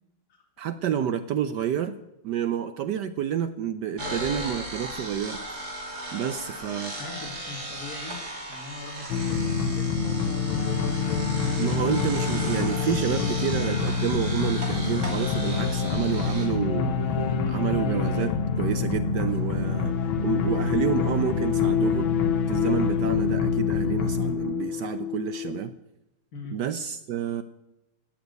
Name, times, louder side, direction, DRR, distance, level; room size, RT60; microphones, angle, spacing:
voice 1, 0.6-2.0 2.2-5.4 6.1-7.0 11.6-19.9 20.2-22.1 22.5-25.7 26.5-27.4, right 9 dB, 70° right, 11 dB, 1.1 m, -29 dB
sound 1, 4.0-16.5, right 1 dB, 50° right, 3.6 m, -37 dB
voice 2, 7.0-8.2 8.4-10.4 26.3-26.6, left 3 dB, 45° left, 1 dB, 2.4 m, -41 dB
sound 2, 9.1-25.6, left 6 dB, 75° left, 1.8 m, -26 dB
16.0 x 7.5 x 9.3 m, 0.92 s
omnidirectional pair, 2.2 m